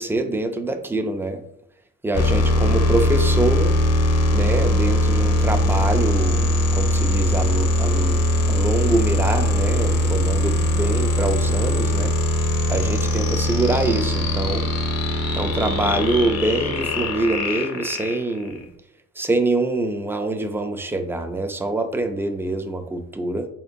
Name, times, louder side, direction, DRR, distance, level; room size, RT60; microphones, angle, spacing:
voice 1, 0.0-1.4 2.0-3.7 4.3-12.1 12.7-14.7 15.3-18.7 19.2-23.5, right 2 dB, 10° right, 7 dB, 0.4 m, -25 dB
sound 1, 2.1-18.6, left 1 dB, 55° left, 0.7 m, -21 dB
4.2 x 2.7 x 2.5 m, 0.74 s
cardioid pair, 90°, 30 cm